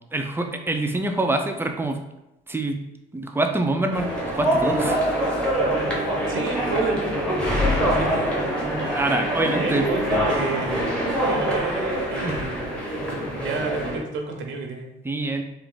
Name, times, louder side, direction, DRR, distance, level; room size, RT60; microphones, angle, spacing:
voice 1, 0.1-2.0 2.5-2.8 3.1-5.0 8.9-9.9 12.2-12.4 15.0-15.4, right 2 dB, 10° right, 4 dB, 0.5 m, -25 dB
sound 1, 3.9-14.0, equal, 5° left, 1.0 m, -24 dB
voice 2, 6.3-6.9 7.6-8.3 9.6-12.7 13.4-14.9, right 4 dB, 80° right, 2 dB, 0.8 m, -31 dB
3.6 x 2.5 x 3.7 m, 0.91 s
cardioid pair, 90°, 20 cm